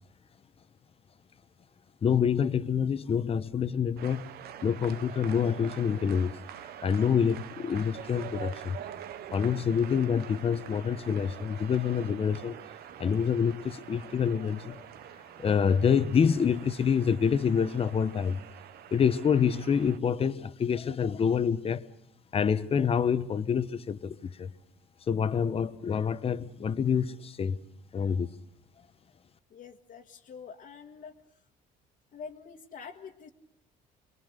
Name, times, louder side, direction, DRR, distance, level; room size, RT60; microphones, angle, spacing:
voice 1, 2.0-4.3 4.6-6.3 6.8-8.8 9.3-12.6 13.0-14.8 15.4-18.4 18.9-21.8 22.3-24.5 25.1-27.6 27.9-28.3, left 7 dB, 35° left, 1.0 m, -27 dB
sound 1, 4.0-20.0, right 10 dB, 70° right, 1.0 m, -45 dB
voice 2, 29.5-31.4 32.1-33.3, left 6 dB, 55° left, 1.7 m, -46 dB
27.0 x 22.5 x 6.7 m
cardioid pair, 110°, 17 cm